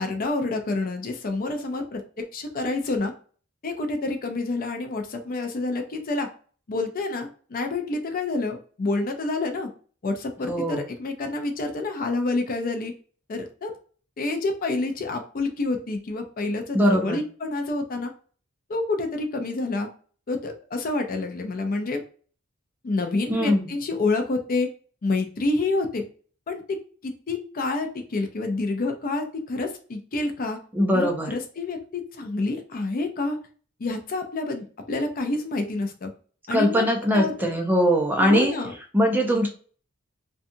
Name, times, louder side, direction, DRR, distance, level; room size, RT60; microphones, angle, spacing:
voice 1, 0.0-3.1 3.6-6.3 6.7-9.7 10.0-12.9 13.3-13.8 14.2-18.1 18.7-19.9 20.3-22.0 22.8-24.7 25.0-26.0 26.5-30.6 30.9-33.4 33.8-36.1 36.5-36.9 37.1-37.3 38.2-38.7, left 3 dB, 45° left, 5 dB, 0.4 m, -28 dB
voice 2, 10.5-10.8 16.7-17.2 23.3-23.6 30.7-31.3 36.5-38.5 38.9-39.5, equal, 10° right, 2 dB, 0.5 m, -21 dB
2.7 x 2.3 x 2.5 m, 0.41 s
head